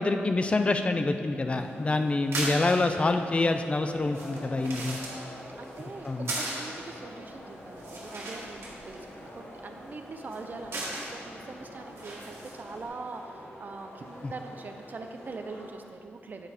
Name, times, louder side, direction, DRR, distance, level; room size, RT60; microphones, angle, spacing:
voice 1, 0.0-5.0 6.0-6.3 14.2-14.3, left 2 dB, 30° left, 7 dB, 0.4 m, -26 dB
sound 1, 1.5-15.7, left 1 dB, 65° left, 1.3 m, -46 dB
sound 2, 2.1-12.9, right 2 dB, 85° right, 1.6 m, -40 dB
voice 2, 5.6-16.5, right 3 dB, 45° right, 5 dB, 0.6 m, -43 dB
8.9 x 4.7 x 4.2 m, 2.5 s
wide cardioid pair, 125°, 4 cm